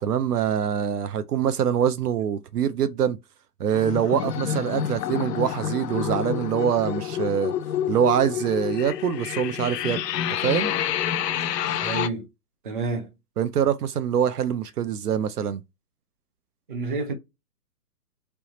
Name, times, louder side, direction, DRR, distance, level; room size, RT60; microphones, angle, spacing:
voice 1, 0.0-3.2 3.6-7.5 7.9-10.0 10.4-10.7 13.4-15.6, right 9 dB, 70° right, 0.7 m, -24 dB
sound 1, 3.7-12.1, left 9 dB, 75° left, 0.6 m, -28 dB
voice 2, 11.8-12.3 12.6-13.1 16.7-17.1, right 3 dB, 30° right, 0.7 m, -29 dB
3.4 x 3.0 x 2.9 m
hypercardioid pair, 170°, 49 cm